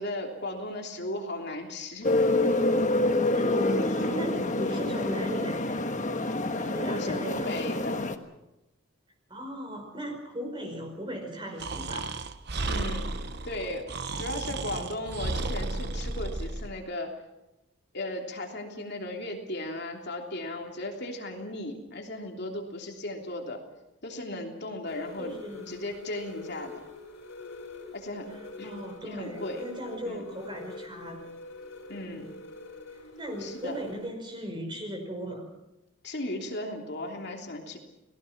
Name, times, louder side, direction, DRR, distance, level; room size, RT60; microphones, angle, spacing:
voice 1, 0.0-2.1 4.6-5.0 6.8-8.1 12.6-13.1 13.4-13.9 14.2-17.1 17.9-23.6 24.0-25.3 25.7-26.7 27.9-28.3 28.6-28.7 29.0-29.6 30.0-30.3 31.9-32.3 33.4-33.8 36.0-37.8, left 1 dB, 50° left, 2 dB, 3.2 m, -36 dB
sound 1, 2.0-8.1, left 2 dB, 35° left, 1.5 m, -27 dB
voice 2, 3.3-6.1 6.5-7.5 9.3-12.1 14.4-15.0 25.2-25.7 28.3-31.3 31.9-32.3 33.2-35.5, equal, 20° right, 4 dB, 5.1 m, -37 dB
Breathing, 11.6-16.7, right 2 dB, 50° right, 1.1 m, -33 dB
sound 2, 24.9-34.1, left 2 dB, 70° left, 5.5 m, -44 dB
30.0 x 19.0 x 6.0 m, 0.94 s
head